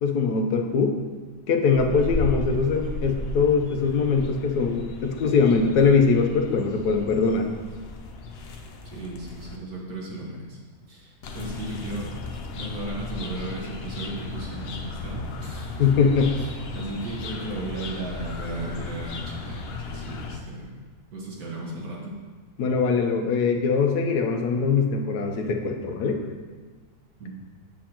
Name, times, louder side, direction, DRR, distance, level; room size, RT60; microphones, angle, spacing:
voice 1, 0.0-1.0 1.5-7.5 15.8-16.3 22.6-26.2, left 5 dB, 80° left, 4 dB, 1.3 m, -22 dB
sound 1, 1.7-9.6 11.2-20.4, left 3 dB, 60° left, 0.6 m, -35 dB
voice 2, 8.8-10.6 10.9-12.1 12.5-15.9 16.3-20.8 21.1-22.2 27.2-27.4, right 2 dB, 70° right, -4 dB, 2.0 m, -35 dB
7.4 x 7.2 x 2.9 m, 1.4 s
omnidirectional pair, 1.7 m